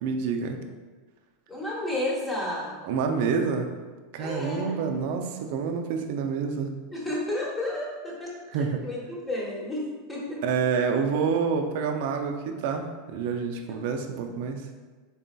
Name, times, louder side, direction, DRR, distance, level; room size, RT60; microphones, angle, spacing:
voice 1, 0.0-0.6 2.8-3.7 4.1-6.7 8.5-8.8 10.4-14.6, right 5 dB, 65° right, 5 dB, 0.4 m, -28 dB
voice 2, 1.5-2.8 4.2-4.8 6.9-8.3 8.8-10.4 13.7-13.8, left 1 dB, 10° left, -4 dB, 1.0 m, -31 dB
4.0 x 3.9 x 2.2 m, 1.3 s
supercardioid pair, 135°, 0 cm